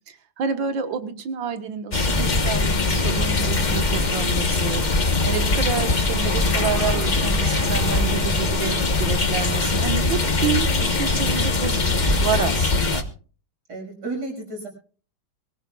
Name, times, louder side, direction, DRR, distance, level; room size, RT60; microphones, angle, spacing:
voice 1, 0.1-4.8 5.3-13.0, right 7 dB, 85° right, 9 dB, 2.0 m, -29 dB
sound 1, 1.9-13.0, left 3 dB, 30° left, 1.0 m, -21 dB
sound 2, 3.5-4.4 4.6-4.7 5.0-6.8 7.6-8.5 8.9-9.8 10.6-10.8, right 3 dB, 45° right, 2.6 m, -45 dB
Shout / Cheering, 4.5-12.2, right 1 dB, 10° right, 3.7 m, -41 dB
voice 2, 13.7-14.7, right 2 dB, 60° right, 2 dB, 6.7 m, -33 dB
23.5 x 15.0 x 2.3 m, 0.40 s
omnidirectional pair, 2.0 m